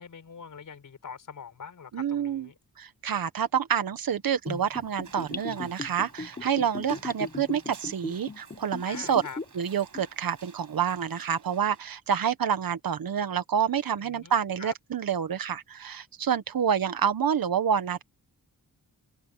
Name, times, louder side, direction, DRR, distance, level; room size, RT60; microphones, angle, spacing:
voice 1, 0.0-2.5 8.9-9.4 14.0-14.7, left 6 dB, 60° left, 5.1 m, -44 dB
voice 2, 1.9-2.5 2.8-9.2 9.5-18.0, right 8 dB, 75° right, 1.6 m, -28 dB
Gurgling / Bathtub (filling or washing), 4.5-9.6 9.9-10.0, left 3 dB, 25° left, 1.1 m, -37 dB
sound 1, 5.0-11.8, right 6 dB, 60° right, 7.2 m, -52 dB
open air
wide cardioid pair, 145°, 35 cm